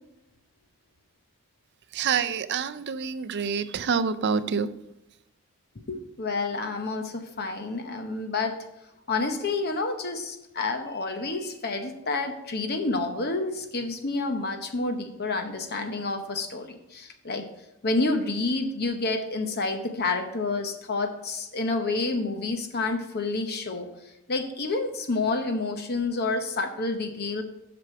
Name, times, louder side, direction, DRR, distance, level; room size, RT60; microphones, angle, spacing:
voice 1, 1.9-4.7, right 6 dB, 50° right, 0.4 m, -27 dB
voice 2, 5.9-8.6 9.1-17.5 17.8-23.9 24.3-27.4, left 3 dB, 45° left, 0.8 m, -29 dB
8.3 x 6.0 x 4.6 m
head